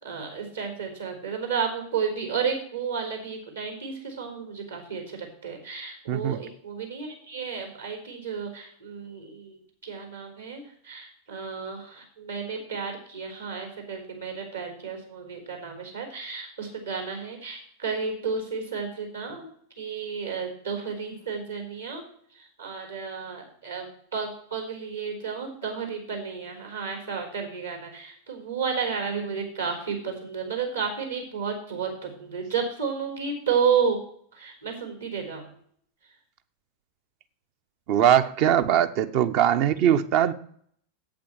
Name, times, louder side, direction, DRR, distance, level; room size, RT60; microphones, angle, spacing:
voice 1, 0.0-19.5 19.8-22.0 22.3-23.9 24.1-34.0 34.3-35.5, right 6 dB, 75° right, 4.1 m, -32 dB
voice 2, 6.1-6.4 37.9-40.3, right 10 dB, 45° right, 0.8 m, -21 dB
8.6 x 8.4 x 7.5 m
figure-of-eight pair, 90°, 0 cm